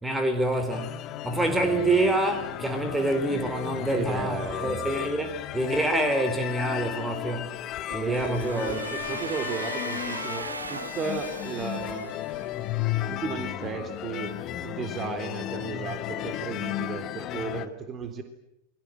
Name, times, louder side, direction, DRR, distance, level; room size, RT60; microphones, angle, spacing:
voice 1, 0.0-7.6 7.9-9.2, right 1 dB, 5° right, 4.0 m, -27 dB
sound 1, 0.7-17.7, left 13 dB, 35° left, 1.7 m, -34 dB
voice 2, 3.9-4.9 7.9-12.1 13.1-14.3 14.6-18.2, right 5 dB, 25° right, 3.8 m, -34 dB
Domestic sounds home sounds, 8.1-12.9, right 4 dB, 75° right, 1.2 m, -39 dB
28.5 x 23.5 x 7.8 m
figure-of-eight pair, 90°, 0 cm